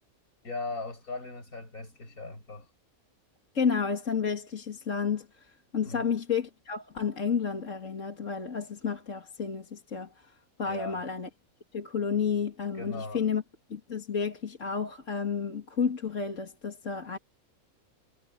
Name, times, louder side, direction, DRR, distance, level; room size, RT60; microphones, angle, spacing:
voice 1, 0.4-2.7 5.9-6.1 10.7-11.0 12.7-13.3, left 3 dB, 80° left, 7.9 m, -38 dB
voice 2, 3.5-5.5 5.7-10.3 10.6-11.3 11.7-13.4 13.7-17.2, left 6 dB, 60° left, 2.8 m, -31 dB
omnidirectional pair, 1.5 m